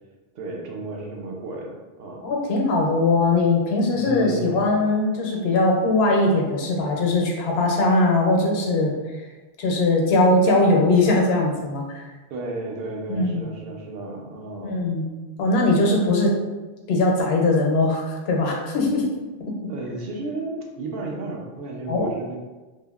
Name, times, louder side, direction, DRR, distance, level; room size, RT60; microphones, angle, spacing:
voice 1, 0.3-2.3 3.9-4.7 12.3-14.8 19.7-22.4, right 2 dB, 75° right, 0 dB, 0.8 m, -33 dB
voice 2, 2.2-8.9 9.6-12.0 13.1-13.4 14.6-15.0 15.4-16.3 16.9-19.0 21.9-22.1, left 2 dB, 85° left, 0 dB, 0.8 m, -20 dB
3.4 x 2.1 x 2.3 m, 1.2 s
omnidirectional pair, 1.0 m